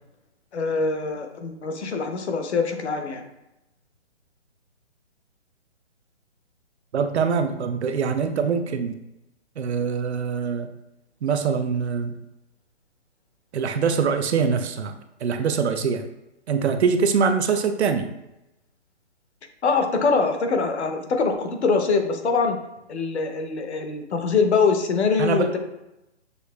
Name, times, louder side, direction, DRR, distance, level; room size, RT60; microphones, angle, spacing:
voice 1, 0.5-3.2 19.6-22.6 22.9-25.6, left 4 dB, 70° left, 5 dB, 0.8 m, -23 dB
voice 2, 6.9-8.9 9.6-10.7 11.2-12.2 13.5-14.9 15.2-16.0 16.5-18.1 25.2-25.6, right 6 dB, 70° right, 8 dB, 0.6 m, -23 dB
6.4 x 2.6 x 2.2 m, 0.90 s
hypercardioid pair, 165°, 35 cm